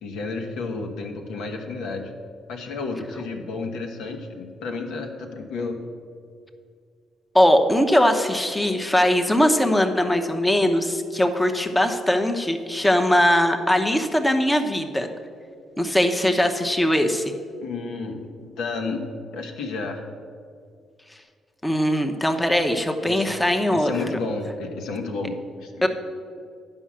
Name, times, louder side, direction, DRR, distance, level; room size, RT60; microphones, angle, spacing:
voice 1, 0.0-2.1 2.5-5.9 17.6-19.1 19.3-20.1 23.0-23.3 23.7-25.9, left 3 dB, 90° left, 2 dB, 1.2 m, -31 dB
voice 2, 7.3-15.1 15.8-17.3 21.6-23.9 25.8-25.9, left 1 dB, 10° left, 5 dB, 0.8 m, -20 dB
9.8 x 5.6 x 7.4 m, 2.2 s
cardioid pair, 90°, 0 cm